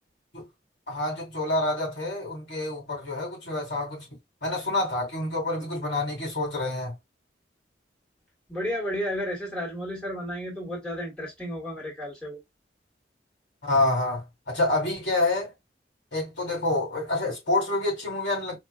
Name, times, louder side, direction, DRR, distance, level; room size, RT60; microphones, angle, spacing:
voice 1, 0.9-4.1 4.4-6.9 13.6-15.5 16.1-18.6, left 2 dB, 80° left, 2.3 m, -27 dB
voice 2, 8.5-12.4, equal, 5° left, 1.5 m, -32 dB
4.5 x 2.6 x 2.3 m
head